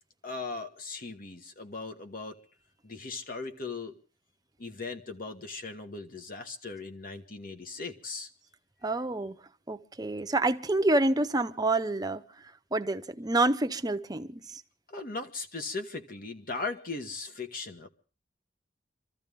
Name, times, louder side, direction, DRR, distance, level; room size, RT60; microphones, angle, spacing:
voice 1, 0.2-2.4 2.8-4.0 4.6-8.3 14.9-17.9, left 3 dB, 50° left, 1.5 m, -38 dB
voice 2, 8.8-9.4 9.7-12.2 12.7-14.6, right 2 dB, 20° right, 0.8 m, -28 dB
26.0 x 14.0 x 3.6 m
head